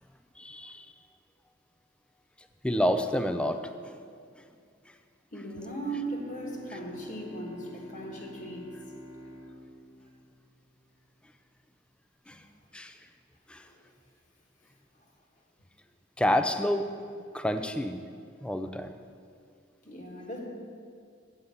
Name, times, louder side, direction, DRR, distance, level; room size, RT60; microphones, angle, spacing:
voice 1, 0.4-0.9 2.6-4.0 12.3-12.4 12.7-13.0 13.5-13.6 16.2-17.1 17.3-18.0 18.4-18.9, equal, 5° left, 8 dB, 0.4 m, -29 dB
voice 2, 5.3-8.7 12.3-12.4 13.6-13.8 19.8-20.5, right 1 dB, 40° left, -1 dB, 1.3 m, -38 dB
Bowed string instrument, 5.5-11.1, equal, 10° right, 1.2 m, -48 dB
8.4 x 5.6 x 7.9 m, 2.3 s
head